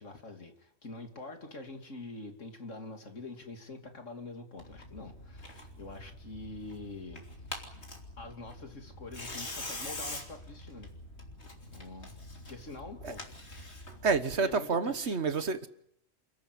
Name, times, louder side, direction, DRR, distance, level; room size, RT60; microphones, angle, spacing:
voice 1, 0.0-7.2 8.2-10.9 11.7-12.2 12.5-13.3 14.4-15.2, left 2 dB, 75° left, 5 dB, 3.2 m, -45 dB
Tearing, 4.6-14.2, left 2 dB, 60° left, 3.5 m, -44 dB
voice 2, 14.0-15.7, right 4 dB, 60° right, 12 dB, 1.5 m, -28 dB
28.5 x 14.0 x 9.9 m, 0.73 s
omnidirectional pair, 1.3 m